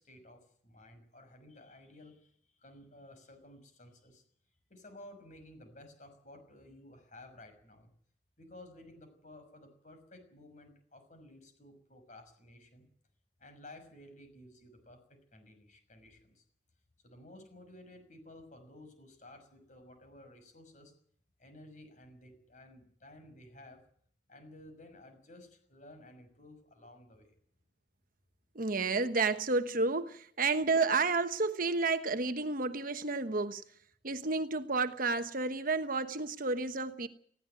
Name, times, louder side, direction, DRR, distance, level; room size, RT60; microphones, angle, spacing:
voice 1, 0.0-4.2 4.7-7.9 8.4-12.9 13.4-15.0 15.3-16.4 17.0-20.9 21.4-23.8 24.3-27.3, left 1 dB, 40° left, 8 dB, 6.1 m, -54 dB
voice 2, 28.5-33.6 34.0-37.1, right 3 dB, 50° right, 10 dB, 1.1 m, -31 dB
19.5 x 16.0 x 9.4 m, 0.62 s
head